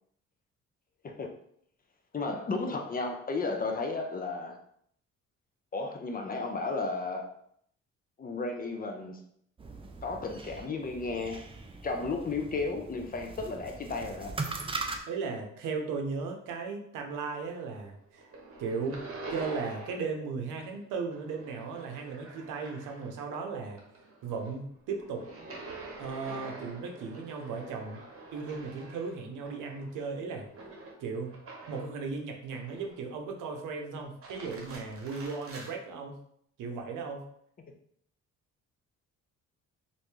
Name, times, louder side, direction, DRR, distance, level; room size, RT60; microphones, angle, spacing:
voice 1, 2.1-4.6 5.7-7.3 8.2-9.2 10.0-11.5 11.8-14.4, left 3 dB, 30° left, 4 dB, 0.6 m, -33 dB
sound 1, 9.6-15.0, right 3 dB, 20° right, 0.4 m, -40 dB
voice 2, 15.1-18.3 18.6-23.8 24.2-25.3 26.0-28.0 28.3-30.5 31.0-31.4 31.7-36.2 36.6-37.3, right 4 dB, 85° right, 3 dB, 0.7 m, -36 dB
sound 2, 17.1-17.9 18.1-20.2 20.4-23.3 23.7-32.0 32.5-33.2 34.0-35.7, right 2 dB, 45° right, 1.0 m, -46 dB
3.2 x 2.6 x 3.1 m, 0.67 s
cardioid pair, 90°, 30 cm